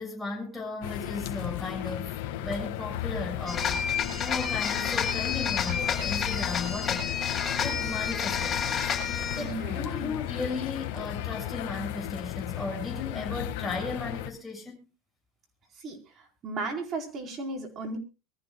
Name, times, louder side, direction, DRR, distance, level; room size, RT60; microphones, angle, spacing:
voice 1, 0.0-7.2 7.6-8.9 9.4-14.8, left 3 dB, 5° left, 6.7 m, -36 dB
sound 1, 0.8-14.3, left 13 dB, 70° left, 1.8 m, -35 dB
sound 2, 3.5-9.6, left 7 dB, 20° left, 7.3 m, -30 dB
voice 2, 9.3-9.9 15.8-16.0 16.4-18.0, right 3 dB, 35° right, 4.4 m, -35 dB
23.5 x 14.5 x 2.4 m
supercardioid pair, 125°, 0 cm